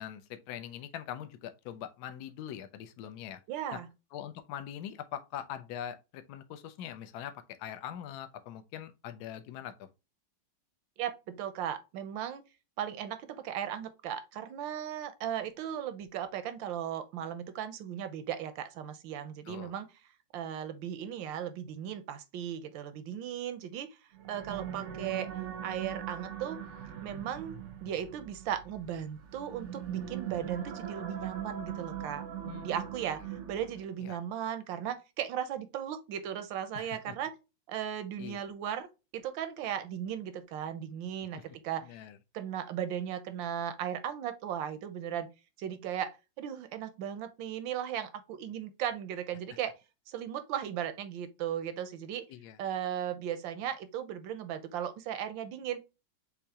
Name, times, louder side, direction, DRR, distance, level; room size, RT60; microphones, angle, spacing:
voice 1, 0.0-3.4 3.7-3.8 4.1-7.3 7.6-9.9 19.5-19.7 32.4-32.7 34.0-34.2 36.7-37.1 38.2-38.4 41.3-41.4 41.9-42.2 52.3-52.6, left 10 dB, 70° left, 1.1 m, -42 dB
voice 2, 3.5-3.9 11.0-12.4 12.8-19.9 20.3-24.0 24.3-25.3 25.6-26.6 27.0-32.2 32.6-37.3 37.7-38.9 39.1-41.9 42.3-45.3 45.6-49.8 50.1-52.2 52.6-55.8, right 9 dB, 80° right, 1.4 m, -37 dB
sound 1, 24.1-34.0, right 9 dB, 65° right, 0.7 m, -41 dB
6.6 x 2.7 x 2.8 m
omnidirectional pair, 2.0 m